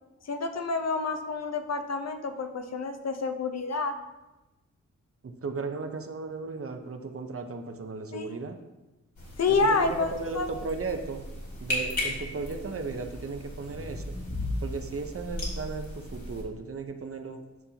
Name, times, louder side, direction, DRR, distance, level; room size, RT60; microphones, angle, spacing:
voice 1, 0.2-3.9 8.1-8.4 9.4-10.5, left 3 dB, 60° left, 6 dB, 0.7 m, -28 dB
voice 2, 5.2-8.6 9.5-11.3 11.6-14.2 14.6-17.4, right 4 dB, 50° right, 5 dB, 0.7 m, -36 dB
sound 1, 9.2-16.4, left 1 dB, 80° left, 2.5 m, -36 dB
9.3 x 5.5 x 2.8 m, 1.1 s
wide cardioid pair, 80°, 29 cm